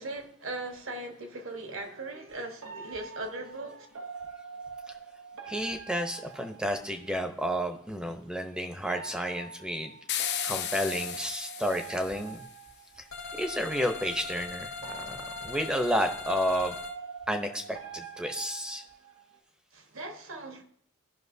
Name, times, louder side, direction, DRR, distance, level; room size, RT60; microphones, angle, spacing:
voice 1, 0.0-3.9 19.7-20.6, right 2 dB, 65° right, 1.3 m, -39 dB
sound 1, 2.6-7.2 8.8-13.4 14.8-19.4, right 5 dB, 90° right, 0.8 m, -44 dB
voice 2, 5.5-9.9 10.4-12.4 13.4-16.8 17.3-18.8, equal, 5° right, 0.7 m, -31 dB
sound 2, 10.1-12.5, left 11 dB, 50° left, 0.6 m, -35 dB
sound 3, 13.1-16.9, left 4 dB, 70° left, 1.3 m, -40 dB
15.5 x 5.8 x 2.7 m
head